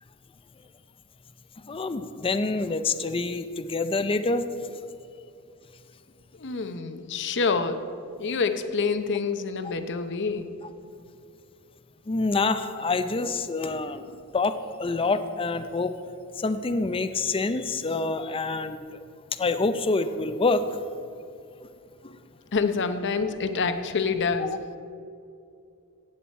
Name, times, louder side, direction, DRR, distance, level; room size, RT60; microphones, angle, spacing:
voice 1, 1.7-4.4 12.1-14.5 14.8-15.9 16.4-18.9 19.4-20.6 22.0-22.2 24.4-24.5, left 3 dB, 25° left, 10 dB, 0.5 m, -26 dB
voice 2, 6.3-7.8 8.2-10.5 22.5-24.5, left 4 dB, 55° left, 9 dB, 0.7 m, -27 dB
15.0 x 9.0 x 4.3 m, 2.5 s
head